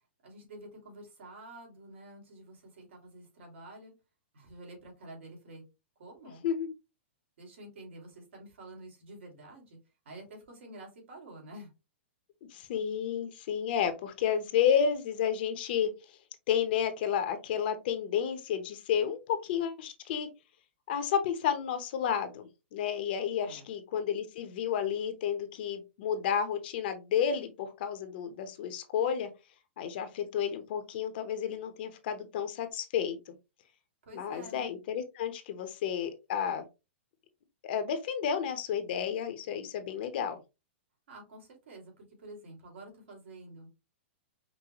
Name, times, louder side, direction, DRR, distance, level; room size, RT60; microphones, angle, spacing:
voice 1, 0.2-3.9 4.3-5.6 6.0-6.5 7.4-9.8 10.0-11.7 23.4-23.7 34.1-34.7 41.1-43.7, right 1 dB, 75° right, 1 dB, 2.4 m, -49 dB
voice 2, 12.5-16.2 16.5-20.3 20.9-29.3 29.8-33.3 34.1-36.7 37.6-40.4, left 8 dB, 55° left, 8 dB, 0.9 m, -31 dB
5.4 x 2.2 x 3.0 m, 0.26 s
hypercardioid pair, 150°, 7 cm